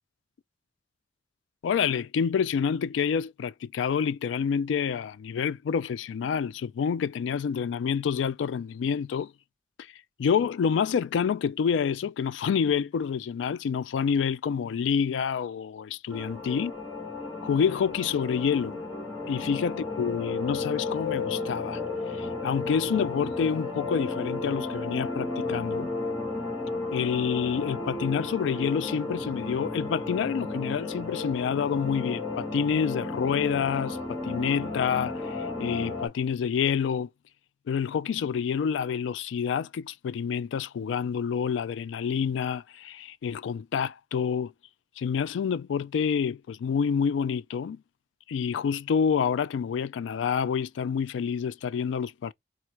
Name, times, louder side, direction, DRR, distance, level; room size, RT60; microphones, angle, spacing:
voice 1, 1.6-9.3 10.2-16.7 17.4-18.8 19.3-21.8 22.1-25.9 26.9-37.1 37.7-44.5 45.0-47.8 48.3-52.3, left 7 dB, 85° left, 0.3 m, -28 dB
sound 1, 16.1-36.1, left 3 dB, 20° left, 2.2 m, -33 dB
4.3 x 2.4 x 4.5 m
head